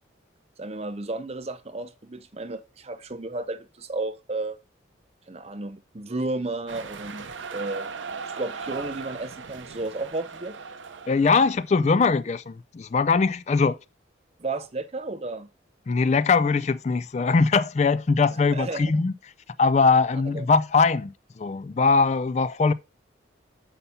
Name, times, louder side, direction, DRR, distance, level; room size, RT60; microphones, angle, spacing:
voice 1, 0.6-4.6 5.3-7.9 8.4-10.6 14.4-15.5 18.3-18.9 20.3-20.5, right 2 dB, 30° right, 0.6 m, -33 dB
sound 1, 6.7-11.8, right 5 dB, 80° right, 0.7 m, -38 dB
voice 2, 11.1-13.8 15.9-19.1 19.6-22.7, left 4 dB, 35° left, 0.3 m, -21 dB
6.9 x 5.5 x 5.7 m
head